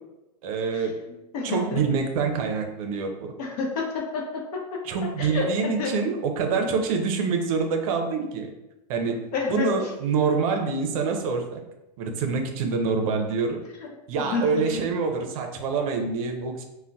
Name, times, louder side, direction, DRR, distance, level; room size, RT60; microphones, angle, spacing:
voice 1, 0.4-0.9 1.4-3.3 4.8-8.5 8.9-11.6 12.0-13.6 14.1-16.6, right 5 dB, 55° right, 4 dB, 0.5 m, -26 dB
voice 2, 1.3-1.8 3.4-4.6 5.2-5.9 6.5-6.6 9.3-9.8 10.3-10.4 14.2-14.8, left 4 dB, 60° left, -1 dB, 0.8 m, -29 dB
3.8 x 2.1 x 2.2 m, 0.95 s
hypercardioid pair, 125°, 21 cm